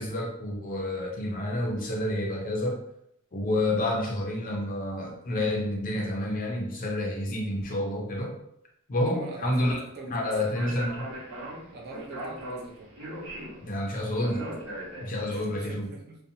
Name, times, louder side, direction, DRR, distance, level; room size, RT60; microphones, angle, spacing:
voice 1, 0.0-2.8 3.3-8.4 8.9-9.8 10.1-11.1 13.6-14.5 15.0-15.9, left 1 dB, 40° left, 0 dB, 0.5 m, -29 dB
voice 2, 9.1-10.4 11.7-12.9 15.3-16.2, right 3 dB, 50° right, 0 dB, 0.6 m, -43 dB
Speech, 10.4-15.4, right 1 dB, 85° right, 1.0 m, -39 dB
2.7 x 2.1 x 2.6 m, 0.76 s
head